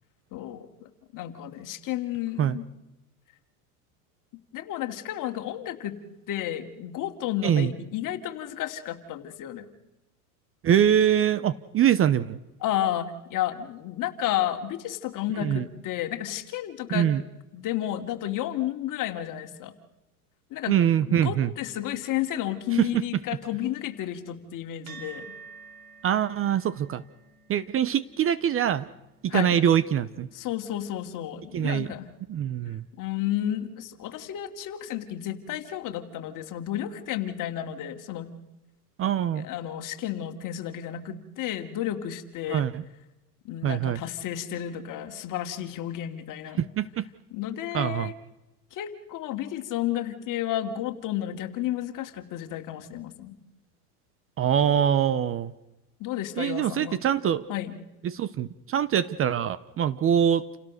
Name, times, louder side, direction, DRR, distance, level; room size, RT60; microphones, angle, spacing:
voice 1, 0.3-2.6 4.5-6.0 6.3-9.7 12.6-17.1 17.5-19.7 20.5-20.8 21.1-25.4 29.3-29.6 30.3-32.1 33.0-38.3 39.3-42.7 43.4-46.6 47.3-48.1 48.7-53.4 56.0-57.0 57.5-57.8, left 12 dB, 40° left, 6 dB, 2.8 m, -32 dB
voice 2, 10.6-12.4 15.4-15.6 16.9-17.2 20.7-21.5 22.7-23.0 26.0-27.0 27.5-28.9 29.2-30.3 31.5-31.9 32.3-32.8 39.0-39.5 42.5-42.8 43.6-44.0 46.6-47.1 47.7-48.1 54.4-55.5 56.4-57.5 58.0-60.4, right 9 dB, 30° right, 17 dB, 0.8 m, -24 dB
sound 1, 24.9-33.5, right 5 dB, 45° right, 3.9 m, -52 dB
29.5 x 17.0 x 6.6 m, 0.97 s
supercardioid pair, 115°, 46 cm